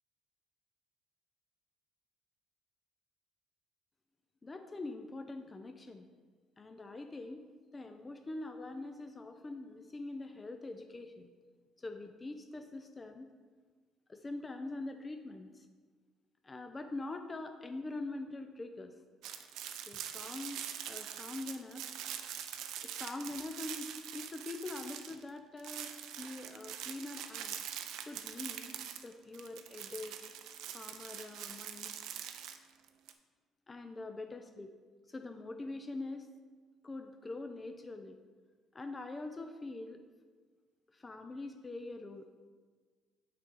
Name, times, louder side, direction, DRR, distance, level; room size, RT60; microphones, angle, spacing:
voice 1, 4.4-6.1 6.6-7.4 7.7-11.3 11.8-13.3 14.1-15.7 16.4-18.9 19.9-21.9 22.8-27.6 28.0-30.2 30.7-31.9 33.7-34.7 35.1-36.3 36.8-38.2 38.7-40.0 40.9-42.3, left 2 dB, 25° left, 6 dB, 0.5 m, -44 dB
sound 1, 19.2-25.3 25.6-33.1, right 10 dB, 75° right, 0.4 m, -44 dB
6.5 x 3.6 x 5.4 m, 1.5 s
supercardioid pair, 70°, 0 cm